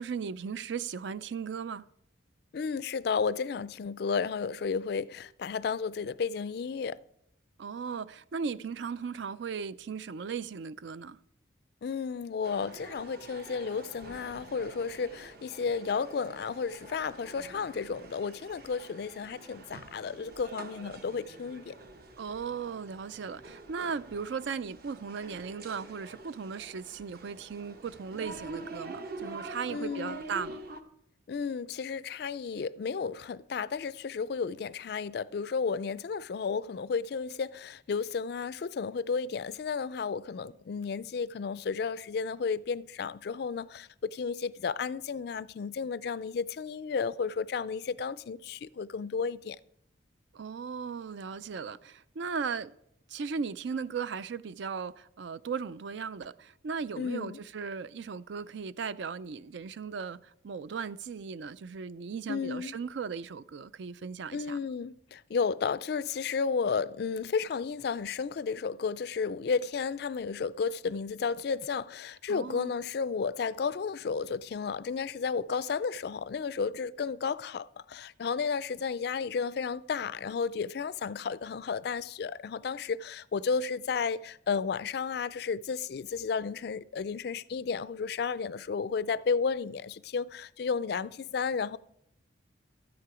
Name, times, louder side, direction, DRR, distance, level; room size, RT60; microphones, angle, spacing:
voice 1, 0.0-1.8 7.6-11.2 22.2-30.6 50.3-52.7 53.1-64.6 72.3-72.7, right 6 dB, 65° right, 0.4 m, -37 dB
voice 2, 2.5-7.0 11.8-21.7 29.7-30.2 31.3-49.6 57.0-57.4 62.3-62.8 64.3-91.8, left 5 dB, 55° left, 0.3 m, -33 dB
sound 1, 12.4-30.8, right 3 dB, 50° right, 0.9 m, -46 dB
13.0 x 9.5 x 4.9 m
head